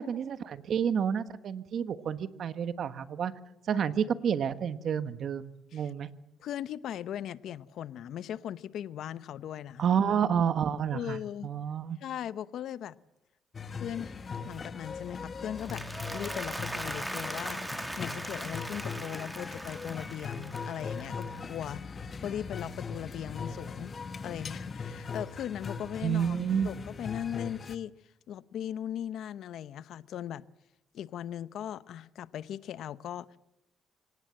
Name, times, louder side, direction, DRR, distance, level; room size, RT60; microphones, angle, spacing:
voice 1, 0.0-3.3 3.7-6.1 9.8-12.0 26.0-26.7, right 8 dB, 60° right, 1.3 m, -29 dB
voice 2, 6.4-9.8 10.9-11.5 12.0-13.0 13.7-14.1 14.4-15.9 16.1-17.6 18.0-21.8 22.2-23.9 24.2-26.4 26.6-27.9 28.3-30.4 30.9-33.3, left 10 dB, 75° left, 0.8 m, -38 dB
sound 1, 13.5-27.8, left 5 dB, 40° left, 1.4 m, -40 dB
Applause, 15.4-21.8, right 1 dB, 10° right, 2.5 m, -40 dB
25.5 x 18.0 x 7.7 m
cardioid pair, 90°, 0 cm